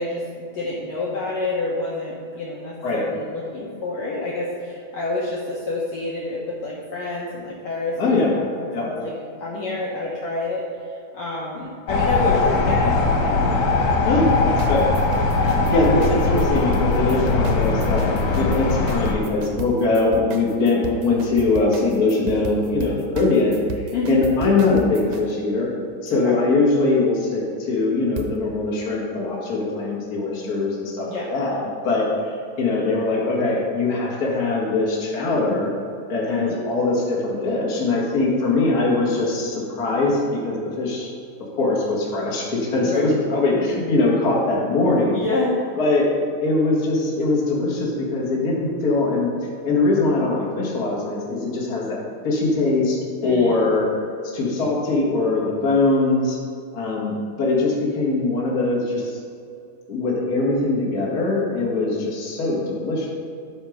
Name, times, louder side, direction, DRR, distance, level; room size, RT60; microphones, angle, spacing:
voice 1, 0.0-9.1 9.4-13.5 15.4-15.8 23.9-24.2 26.2-26.4 31.1-31.3 36.3-36.7 42.9-43.1 45.1-45.6 53.2-53.8, left 2 dB, 65° left, -5 dB, 2.0 m, -28 dB
voice 2, 8.0-8.3 8.7-8.9 14.0-14.9 15.7-25.7 26.0-32.1 32.6-35.7 36.1-41.1 41.6-45.2 45.8-46.1 46.4-49.3 49.6-52.0 52.2-53.0 53.2-53.9 54.3-56.4 56.7-59.1 59.9-63.1, left 3 dB, 35° left, -5 dB, 1.8 m, -21 dB
sound 1, 11.9-19.1, left 3 dB, 85° left, 2.7 m, -20 dB
sound 2, 14.6-25.2 28.2-28.3, right 4 dB, 75° right, 1.7 m, -34 dB
12.0 x 4.4 x 5.1 m, 2.4 s
omnidirectional pair, 3.7 m